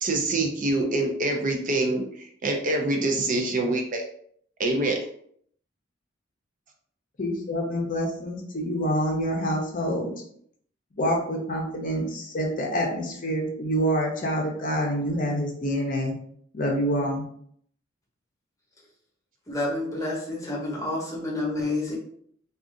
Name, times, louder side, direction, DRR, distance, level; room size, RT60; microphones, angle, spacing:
voice 1, 0.0-4.0 4.6-5.0, right 2 dB, 40° right, 2 dB, 0.5 m, -25 dB
voice 2, 7.2-10.1 11.0-16.1 16.5-17.2, equal, 45° left, 1 dB, 0.7 m, -27 dB
voice 3, 19.5-22.0, left 2 dB, 15° left, -4 dB, 1.0 m, -29 dB
2.5 x 2.4 x 3.7 m, 0.63 s
head